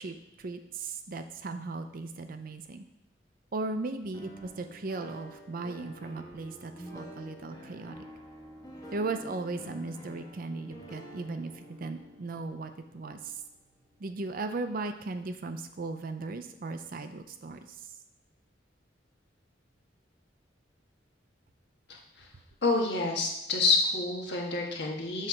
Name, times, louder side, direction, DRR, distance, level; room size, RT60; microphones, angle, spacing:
voice 1, 0.0-2.9 3.5-8.0 8.9-13.4 14.0-17.6, right 3 dB, 50° right, 8 dB, 0.5 m, -37 dB
sound 1, 4.1-14.1, equal, 20° left, 1.1 m, -48 dB
voice 2, 22.6-25.3, left 3 dB, 65° left, -1 dB, 1.4 m, -28 dB
7.7 x 3.3 x 5.9 m, 0.89 s
head